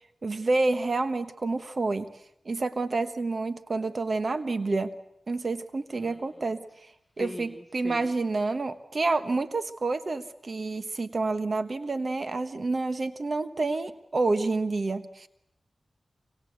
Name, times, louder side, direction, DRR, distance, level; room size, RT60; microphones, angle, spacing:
voice 1, 0.2-2.1 2.4-4.9 5.3-6.6 7.2-15.3, right 3 dB, 55° right, 10 dB, 1.2 m, -28 dB
voice 2, 7.2-8.0, left 1 dB, ahead, 7 dB, 2.4 m, -40 dB
26.0 x 25.5 x 8.1 m, 0.79 s
cardioid pair, 65°, 0 cm